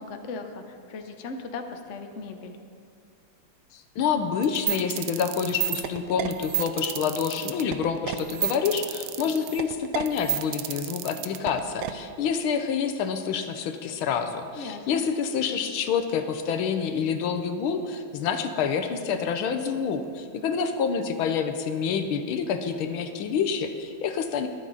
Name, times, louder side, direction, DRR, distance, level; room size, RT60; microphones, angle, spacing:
voice 1, 0.0-2.6 14.6-15.0, left 3 dB, 60° left, 5 dB, 0.8 m, -37 dB
voice 2, 3.7-24.5, left 6 dB, 75° left, 7 dB, 1.5 m, -27 dB
sound 1, 4.4-11.9, right 14 dB, 80° right, 1.5 m, -30 dB
21.5 x 7.7 x 4.0 m, 2.3 s
omnidirectional pair, 2.4 m